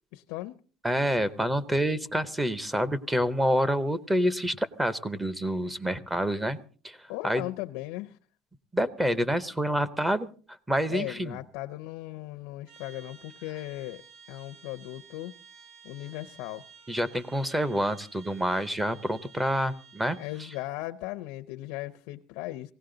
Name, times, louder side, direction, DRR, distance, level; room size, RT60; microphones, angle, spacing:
voice 1, 0.1-0.6 7.1-8.2 10.9-14.0 14.3-15.3 15.8-16.7 20.2-22.7, left 17 dB, 80° left, 0.6 m, -37 dB
voice 2, 0.8-6.6 6.8-7.4 8.7-10.3 10.7-11.4 16.9-20.2, equal, 5° right, 0.8 m, -27 dB
Trumpet, 12.7-20.7, right 6 dB, 50° right, 5.1 m, -53 dB
18.5 x 16.5 x 3.9 m
cardioid pair, 150°, 0 cm